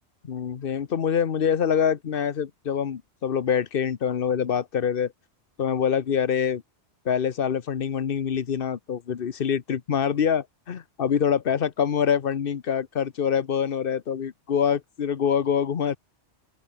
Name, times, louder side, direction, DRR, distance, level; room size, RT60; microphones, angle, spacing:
voice 1, 0.2-5.1 5.6-6.6 7.0-16.0, left 7 dB, 55° left, 1.1 m, -25 dB
open air
omnidirectional pair, 1.2 m